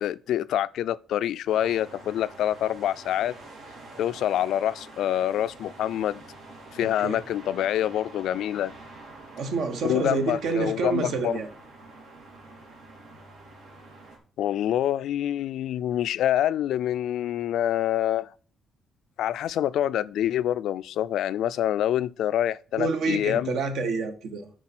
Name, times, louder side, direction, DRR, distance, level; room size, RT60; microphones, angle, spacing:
voice 1, 0.0-3.3 4.0-6.2 6.7-8.7 9.8-11.4 14.4-18.3 19.2-23.5, left 11 dB, 75° left, 0.3 m, -26 dB
sound 1, 1.5-14.2, right 2 dB, 80° right, 3.1 m, -47 dB
voice 2, 6.8-7.2 9.4-11.5 22.8-24.5, right 4 dB, 60° right, 1.2 m, -28 dB
9.7 x 4.6 x 6.0 m
cardioid pair, 175°, 0 cm